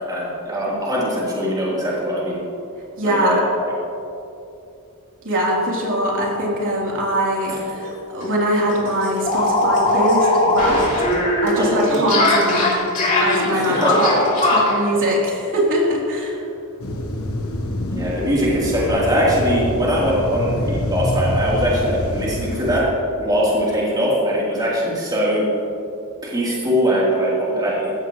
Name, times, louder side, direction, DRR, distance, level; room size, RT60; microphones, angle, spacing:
voice 1, 0.1-2.4 3.0-3.7 7.5-7.6 11.5-11.7 13.5-14.0 17.9-22.9 23.2-25.5 26.2-27.9, equal, 20° right, -7 dB, 3.6 m, -21 dB
voice 2, 3.0-3.4 5.2-10.9 11.4-12.8 13.2-14.1 14.4-16.4, equal, 60° right, -4 dB, 3.6 m, -21 dB
sound 1, 7.8-7.9 8.2-8.3 8.6-14.8, left 2 dB, 40° left, 3.3 m, -19 dB
sound 2, 16.8-22.8, left 1 dB, 70° left, 1.3 m, -26 dB
16.0 x 14.5 x 3.2 m, 2.7 s
head